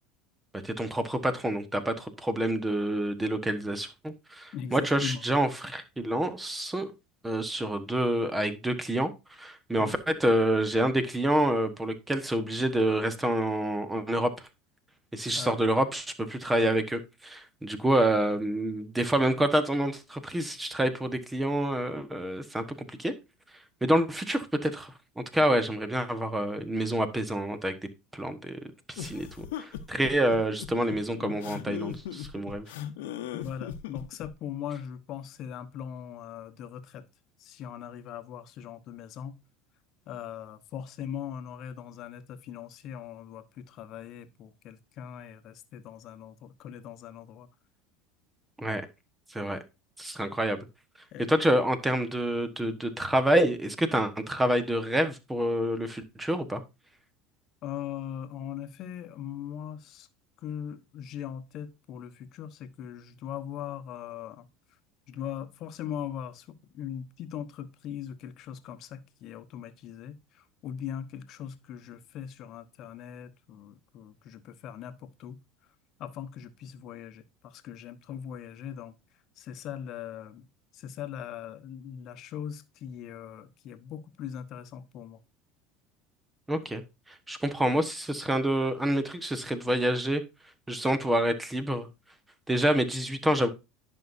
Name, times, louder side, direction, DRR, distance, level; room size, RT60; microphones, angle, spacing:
voice 1, 0.6-6.9 7.2-9.1 9.4-14.5 15.1-23.1 23.8-27.7 28.1-28.6 28.9-32.6 48.6-48.8 49.3-49.6 50.0-50.6 51.3-56.6 86.5-86.8 87.3-90.2 90.7-91.9 92.5-93.5, right 1 dB, 10° right, 1.2 m, -27 dB
voice 2, 4.5-5.2 9.8-10.0 15.3-15.6 17.8-18.0 33.3-37.0 37.4-39.4 40.1-47.5 51.1-51.3 57.6-60.1 60.4-64.5 65.1-75.4 76.0-78.9 79.4-80.5 80.7-85.2, left 9 dB, 55° left, 1.0 m, -40 dB
sound 1, 29.0-34.3, left 10 dB, 80° left, 0.9 m, -38 dB
10.5 x 5.6 x 2.6 m
supercardioid pair, 95°, 0 cm